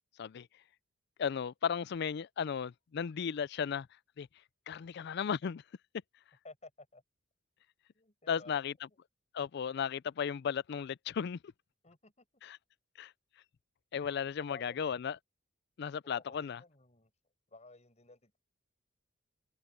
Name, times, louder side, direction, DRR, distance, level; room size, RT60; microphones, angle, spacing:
voice 1, 1.2-3.9 4.2-4.3 4.7-5.6 8.3-8.7 9.3-11.4 12.4-12.6 13.0-13.1 13.9-15.2 15.8-16.6, left 7 dB, 55° left, 0.4 m, -35 dB
voice 2, 6.4-7.0 7.9-9.0 11.8-12.3 14.4-15.1 16.0-17.1 17.5-18.4, left 2 dB, 35° left, 7.6 m, -55 dB
head